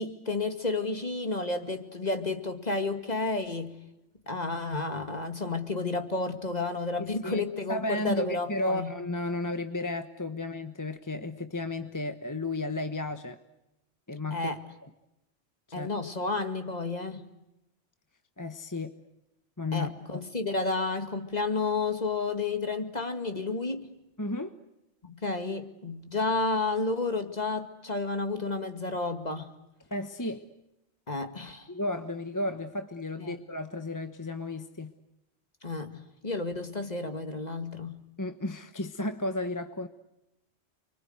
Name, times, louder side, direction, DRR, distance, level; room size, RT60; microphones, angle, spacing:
voice 1, 0.0-3.8 4.3-8.9 14.3-14.6 15.7-17.3 19.7-23.9 25.0-29.5 31.1-31.7 33.2-33.4 35.6-38.0, left 3 dB, 35° left, 2.3 m, -31 dB
voice 2, 7.0-7.4 7.7-13.4 14.1-14.5 15.8-15.9 18.4-19.0 19.6-20.2 24.2-24.6 29.9-30.5 31.7-34.9 38.2-39.9, left 2 dB, 15° left, 1.2 m, -33 dB
29.5 x 24.0 x 8.0 m
omnidirectional pair, 1.2 m